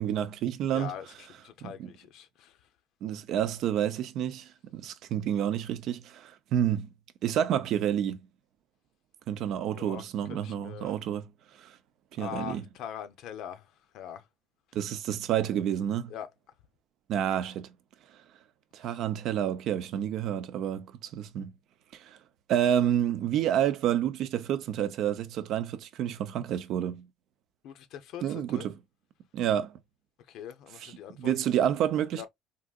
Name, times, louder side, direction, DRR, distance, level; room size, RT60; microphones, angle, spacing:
voice 1, 0.0-0.9 1.6-1.9 3.0-6.9 7.2-8.2 9.3-11.3 11.6-11.8 12.1-12.6 14.7-16.1 17.1-17.7 18.7-21.5 21.9-22.2 22.5-27.1 28.2-28.7 29.3-29.8 30.8-30.9 31.2-32.3, right 10 dB, 60° right, 0.5 m, -29 dB
voice 2, 0.7-2.7 9.7-10.0 10.3-11.0 12.2-14.3 16.1-16.3 18.8-19.0 27.6-28.7 30.3-31.3 32.1-32.3, left 9 dB, 65° left, 0.6 m, -42 dB
3.7 x 2.5 x 2.3 m
cardioid pair, 125°, 0 cm